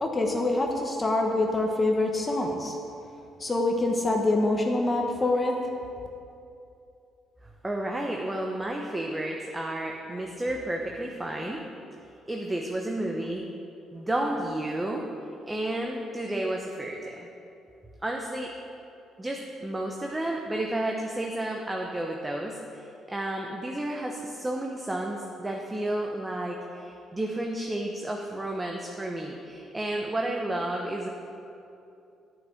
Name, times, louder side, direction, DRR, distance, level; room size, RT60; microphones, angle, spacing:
voice 1, 0.0-2.8 3.4-5.5, left 2 dB, 30° left, 1 dB, 1.1 m, -25 dB
voice 2, 7.6-11.6 12.3-13.4 13.9-15.0 15.5-17.2 18.0-18.5 19.2-31.1, right 1 dB, 15° right, 0 dB, 0.9 m, -31 dB
9.4 x 6.0 x 6.5 m, 2.7 s
supercardioid pair, 65°, 0 cm